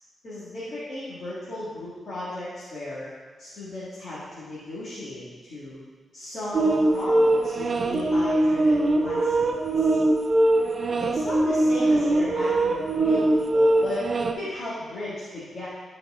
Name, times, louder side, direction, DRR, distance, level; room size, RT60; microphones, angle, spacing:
voice 1, 0.2-3.1 3.4-5.8 6.1-10.0 11.0-15.7, left 1 dB, 40° left, -11 dB, 1.9 m, -35 dB
sound 1, 6.5-14.3, right 2 dB, 35° right, 0.5 m, -22 dB
12.0 x 4.8 x 3.7 m, 1.4 s
wide cardioid pair, 180°, 0 cm